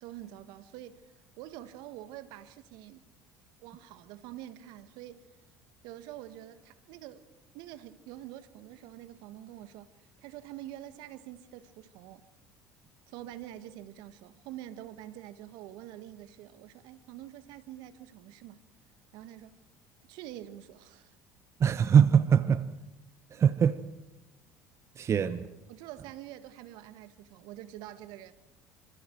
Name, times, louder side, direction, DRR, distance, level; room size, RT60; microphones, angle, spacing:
voice 1, 0.0-3.1 3.6-5.3 5.8-7.3 7.5-12.3 13.1-18.6 19.1-19.6 20.1-21.1 25.7-28.3, right 13 dB, 65° right, 1.5 m, -46 dB
voice 2, 21.6-22.7 23.3-23.8 25.0-25.5, right 7 dB, 40° right, 1.0 m, -23 dB
27.0 x 26.5 x 4.6 m
hypercardioid pair, 70°, 8 cm